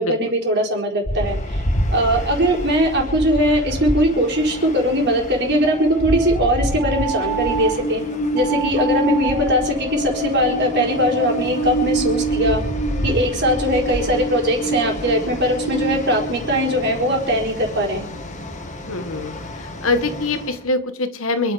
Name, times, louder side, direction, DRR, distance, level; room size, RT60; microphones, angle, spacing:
voice 1, 0.0-1.6 1.9-8.0 8.3-12.6 13.0-18.1, equal, 50° right, 0 dB, 4.2 m, -20 dB
sound 1, 1.0-11.1 11.4-18.2, equal, 80° left, 2.9 m, -29 dB
Train, 1.1-20.6, right 1 dB, 35° left, 1.9 m, -28 dB
sound 2, 5.6-7.8 8.3-11.7, right 5 dB, 35° right, 3.2 m, -30 dB
voice 2, 18.9-21.5, left 3 dB, 65° left, 9 dB, 1.6 m, -24 dB
27.0 x 10.0 x 5.1 m, 0.70 s
head